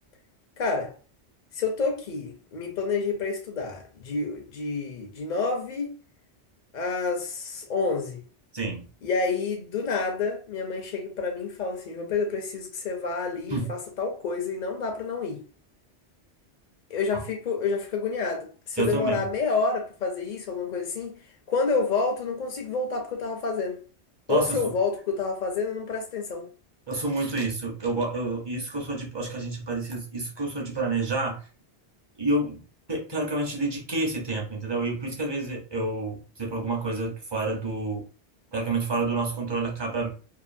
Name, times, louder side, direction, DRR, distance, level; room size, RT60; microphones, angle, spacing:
voice 1, 0.6-0.9 1.5-5.9 6.7-8.2 9.0-15.4 16.9-21.2 21.5-23.8 24.3-26.5, left 4 dB, 55° left, 0.6 m, -29 dB
voice 2, 18.8-19.2 24.3-24.6 26.9-31.4 32.2-32.6 32.9-38.0 38.5-40.1, right 2 dB, 30° right, 0.6 m, -29 dB
2.7 x 2.4 x 2.5 m
omnidirectional pair, 1.2 m